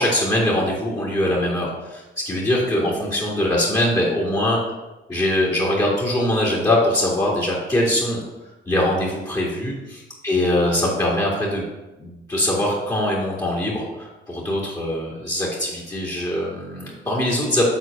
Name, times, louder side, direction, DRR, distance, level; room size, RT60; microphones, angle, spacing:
voice 1, 0.0-4.6 5.1-8.2 8.7-11.6 12.0-17.6, left 1 dB, 20° left, -5 dB, 2.3 m, -22 dB
7.9 x 4.0 x 5.2 m, 1.1 s
cardioid pair, 90°, 20 cm